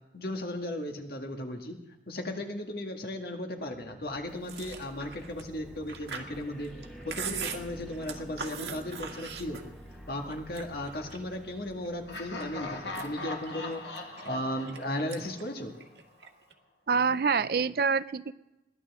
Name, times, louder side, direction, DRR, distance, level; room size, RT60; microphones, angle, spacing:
voice 1, 0.1-1.8 2.1-6.7 7.1-9.8 10.1-14.0 14.3-15.7, left 1 dB, 55° left, 2 dB, 1.9 m, -36 dB
sound 1, 3.6-13.8, equal, 5° left, 2.1 m, -49 dB
Chewing mastication, 4.4-9.9 10.3-11.4 11.8-12.4 12.8-14.8 15.1-15.4 15.7-16.5, right 6 dB, 75° right, 1.7 m, -40 dB
Laughter, 12.1-15.9, left 2 dB, 75° left, 1.8 m, -40 dB
voice 2, 16.9-18.3, right 5 dB, 55° right, 15 dB, 0.5 m, -26 dB
21.5 x 16.5 x 3.6 m, 0.99 s
head